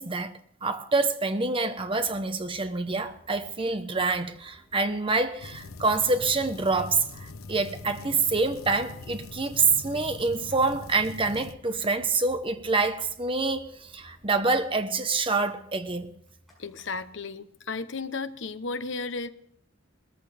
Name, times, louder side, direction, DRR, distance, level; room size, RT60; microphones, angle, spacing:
voice 1, 0.0-16.2, right 3 dB, 25° right, 1.0 m, -26 dB
sound 1, 1.8-17.2, equal, ahead, 6.3 m, -57 dB
sound 2, 5.4-11.5, left 3 dB, 90° left, 0.9 m, -42 dB
voice 2, 16.6-19.3, left 4 dB, 60° left, 0.9 m, -34 dB
20.0 x 14.0 x 3.5 m
head